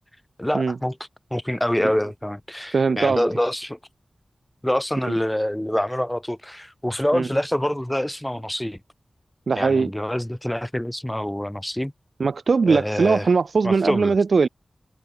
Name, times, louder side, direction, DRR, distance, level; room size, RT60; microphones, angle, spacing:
voice 1, 0.4-1.0 1.3-3.8 4.6-8.8 9.6-11.9 12.7-13.3 13.6-14.1, left 1 dB, 10° left, 0.7 m, -26 dB
voice 2, 2.7-3.3 5.0-5.2 7.1-7.3 9.5-9.9 12.2-14.5, right 4 dB, 80° right, 0.3 m, -20 dB
cardioid pair, 50°, 0 cm